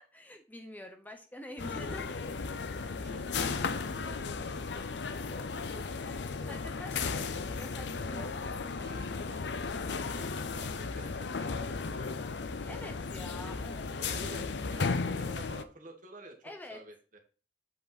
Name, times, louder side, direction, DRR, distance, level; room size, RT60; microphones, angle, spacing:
voice 1, 0.0-2.2 6.5-8.6 12.7-13.9 16.4-16.8, left 1 dB, 10° left, 4 dB, 0.8 m, -47 dB
sound 1, 1.6-15.6, left 4 dB, 85° left, 0.7 m, -35 dB
voice 2, 3.0-6.0 8.8-12.9 14.0-17.2, right 2 dB, 50° right, 3 dB, 1.8 m, -52 dB
7.8 x 5.2 x 4.1 m, 0.38 s
head